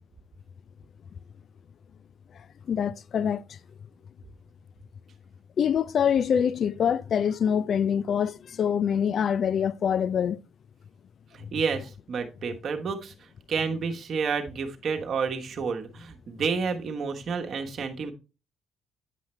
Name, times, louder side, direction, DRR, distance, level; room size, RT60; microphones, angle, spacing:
voice 1, 2.7-3.4 5.6-10.4, left 8 dB, 60° left, 0.3 m, -25 dB
voice 2, 11.3-13.1 13.5-18.1, right 5 dB, 55° right, 1.2 m, -30 dB
9.1 x 5.6 x 3.2 m
cardioid pair, 90°, 0 cm